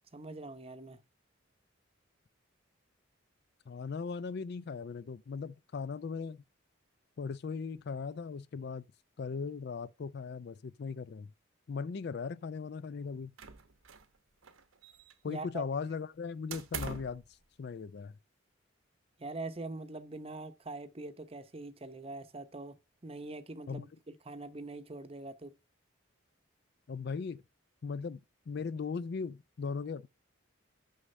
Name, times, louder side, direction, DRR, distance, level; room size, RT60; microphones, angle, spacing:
voice 1, 0.1-1.0 15.2-15.6 19.2-22.8 23.0-23.9 24.2-25.5, right 2 dB, 30° right, 0.7 m, -43 dB
voice 2, 3.7-6.4 7.2-8.8 9.2-11.3 11.7-13.3 15.2-17.2 17.6-18.2 23.7-23.9 26.9-27.4 27.8-30.1, left 5 dB, 50° left, 0.4 m, -38 dB
sound 1, 13.4-14.2 14.4-15.4 16.5-17.2, right 5 dB, 85° right, 1.1 m, -43 dB
6.6 x 6.2 x 5.3 m
head